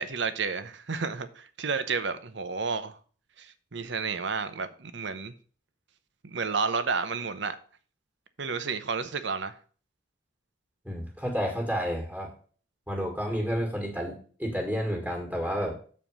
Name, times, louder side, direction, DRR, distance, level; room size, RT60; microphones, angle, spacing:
voice 1, 0.0-3.0 3.4-5.3 6.2-7.6 8.4-9.5, right 5 dB, 65° right, 0.8 m, -31 dB
voice 2, 10.8-12.3 12.9-15.8, equal, 10° right, 1.8 m, -30 dB
7.2 x 4.4 x 6.2 m
head